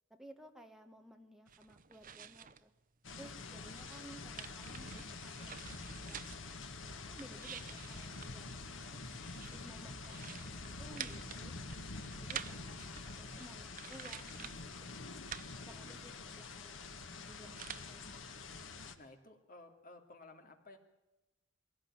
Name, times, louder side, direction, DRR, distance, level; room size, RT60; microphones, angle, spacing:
voice 1, 0.1-2.7 3.2-6.2 6.8-9.0 9.5-15.1 15.6-16.9 17.2-18.1, equal, ahead, 4 dB, 1.9 m, -57 dB
sound 1, 1.5-2.6 3.0-6.5 7.0-14.7 15.1-17.9, right 9 dB, 45° right, 0.9 m, -50 dB
sound 2, 3.0-19.0, left 3 dB, 70° left, 1.7 m, -47 dB
voice 2, 15.8-16.1 19.0-20.8, left 2 dB, 45° left, 5 dB, 2.9 m, -56 dB
22.5 x 17.0 x 9.0 m, 1.0 s
head